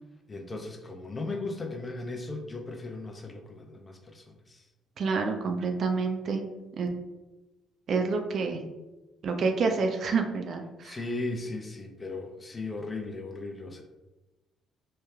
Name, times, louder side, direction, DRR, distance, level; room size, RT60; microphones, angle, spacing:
voice 1, 0.3-4.6 10.8-13.8, left 2 dB, 30° left, 3 dB, 0.5 m, -37 dB
voice 2, 5.0-6.4 6.8-6.9 7.9-8.6 9.2-11.0, right 4 dB, 60° right, 4 dB, 0.4 m, -28 dB
3.1 x 2.1 x 2.3 m, 1.1 s
hypercardioid pair, 55°, 0 cm